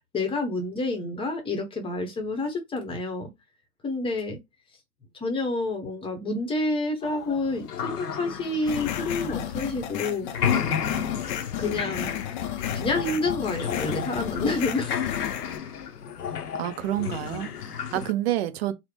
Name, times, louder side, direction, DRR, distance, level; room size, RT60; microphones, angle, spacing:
voice 1, 0.1-3.3 3.8-4.4 5.1-10.3 11.6-12.1 12.7-15.0 17.9-18.0, left 2 dB, 10° left, 0.8 m, -28 dB
sound 1, 7.0-10.0 10.2-18.1, left 7 dB, 85° left, 0.7 m, -32 dB
sound 2, 8.6-15.6, left 11 dB, 35° left, 0.4 m, -33 dB
voice 2, 16.5-18.7, right 13 dB, 45° right, 0.5 m, -28 dB
3.5 x 2.1 x 3.4 m
figure-of-eight pair, 105°, 45 cm